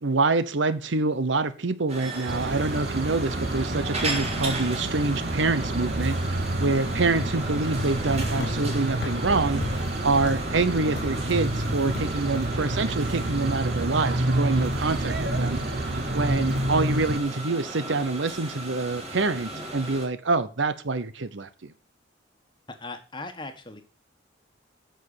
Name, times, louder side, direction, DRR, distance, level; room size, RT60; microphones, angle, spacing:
voice 1, 0.0-15.6 16.1-21.7, right 3 dB, 75° right, 13 dB, 0.9 m, -26 dB
sound 1, 1.9-20.1, right 2 dB, 35° right, 3.1 m, -36 dB
sound 2, 2.3-17.2, right 1 dB, 55° right, 1.2 m, -29 dB
sound 3, 6.5-13.1, left 4 dB, 65° left, 0.6 m, -39 dB
voice 2, 22.7-23.8, left 3 dB, 25° left, 7 dB, 1.4 m, -38 dB
9.4 x 6.6 x 6.7 m, 0.34 s
head